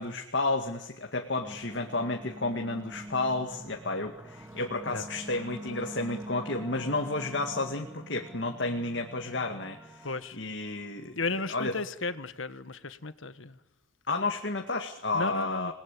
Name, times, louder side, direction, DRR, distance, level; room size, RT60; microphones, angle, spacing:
voice 1, 0.0-10.1 10.3-11.2 11.5-11.7 14.1-15.7, left 2 dB, 60° left, 3 dB, 2.2 m, -31 dB
sound 1, 1.4-11.1, right 1 dB, 10° right, 2.7 m, -45 dB
voice 2, 10.0-10.4 11.1-13.6 15.1-15.7, left 3 dB, 80° left, 12 dB, 1.5 m, -34 dB
29.0 x 20.0 x 8.6 m, 0.85 s
head